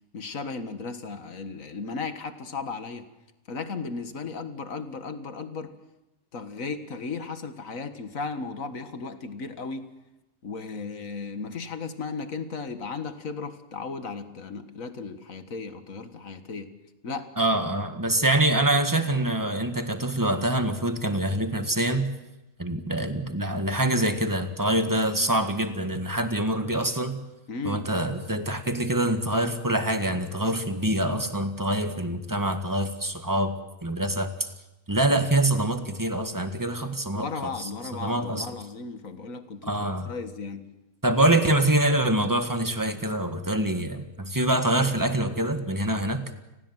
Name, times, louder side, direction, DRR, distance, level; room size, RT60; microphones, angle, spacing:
voice 1, 0.1-3.1 3.5-5.7 6.3-9.9 10.4-16.7 17.0-17.3 27.5-27.9 37.1-40.6 41.3-41.4, left 4 dB, 65° left, 9 dB, 2.1 m, -35 dB
voice 2, 17.4-22.1 22.6-27.2 27.6-33.5 33.8-34.5 34.9-37.7 38.0-38.5 39.7-40.1 41.0-46.2, right 1 dB, 15° right, 8 dB, 1.7 m, -25 dB
29.5 x 19.0 x 7.5 m, 0.99 s
omnidirectional pair, 1.5 m